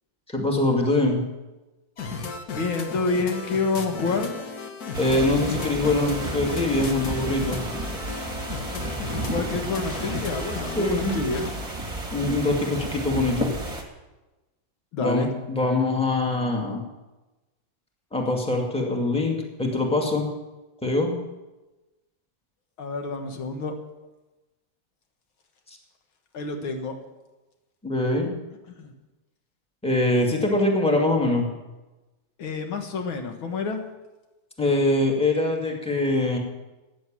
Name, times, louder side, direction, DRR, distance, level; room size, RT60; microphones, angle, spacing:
voice 1, 0.3-1.2 5.0-7.6 10.8-11.2 12.1-13.5 15.0-16.8 18.1-20.3 20.8-21.1 27.8-28.3 29.8-31.5 34.6-36.4, left 2 dB, 5° left, 0 dB, 2.0 m, -23 dB
sound 1, 2.0-11.5, left 4 dB, 50° left, 1.6 m, -35 dB
voice 2, 2.5-4.3 9.2-11.5 14.9-15.3 22.8-23.7 26.3-27.0 28.8-28.9 32.4-33.8, left 4 dB, 80° left, 5 dB, 2.3 m, -28 dB
sound 2, 4.9-13.8, right 1 dB, 20° right, 1.7 m, -32 dB
14.5 x 9.5 x 7.5 m, 1.1 s
omnidirectional pair, 2.2 m